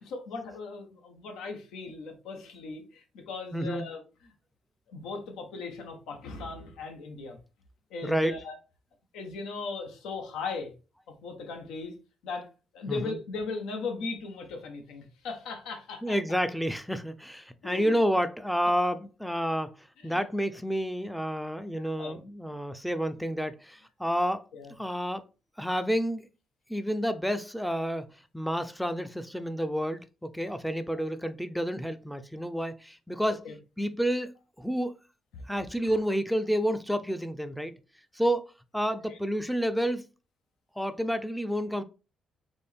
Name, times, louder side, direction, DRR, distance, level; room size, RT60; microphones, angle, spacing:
voice 1, 0.0-4.0 4.9-7.4 7.9-8.6 9.1-10.7 11.2-11.9 12.2-16.2 17.6-18.0 20.0-20.2 22.0-22.2 24.5-24.7 33.4-33.5 39.1-39.2, left 4 dB, 90° left, 1.1 m, -38 dB
voice 2, 3.5-3.8 8.0-8.3 12.9-13.1 16.0-24.4 24.8-25.2 25.6-26.3 26.7-28.1 28.3-33.4 33.8-34.9 35.5-37.7 38.1-40.0 40.8-41.8, equal, ahead, 0.5 m, -30 dB
4.3 x 3.1 x 3.4 m
cardioid pair, 90°, 0 cm